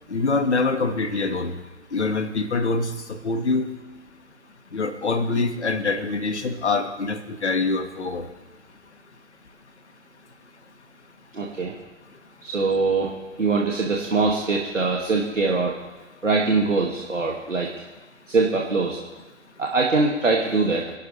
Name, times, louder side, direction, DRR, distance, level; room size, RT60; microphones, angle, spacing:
voice 1, 0.1-1.5 1.9-3.7 4.7-8.3, left 3 dB, 60° left, 7 dB, 1.8 m, -24 dB
voice 2, 11.3-11.7 12.4-15.8 16.2-17.7 18.3-19.0 19.6-20.9, right 3 dB, 75° right, -2 dB, 2.2 m, -23 dB
25.5 x 12.0 x 3.3 m, 1.2 s
figure-of-eight pair, 135°, 38 cm